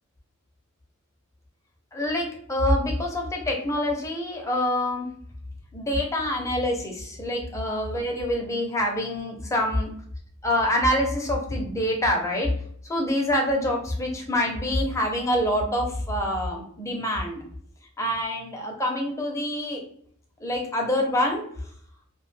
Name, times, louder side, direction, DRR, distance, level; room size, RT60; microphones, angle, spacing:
voice 1, 1.9-5.1 5.7-9.9 10.4-12.5 12.9-17.4 18.0-19.8 20.4-21.4, left 1 dB, 15° left, 0 dB, 0.6 m, -26 dB
2.6 x 2.1 x 3.1 m, 0.62 s
head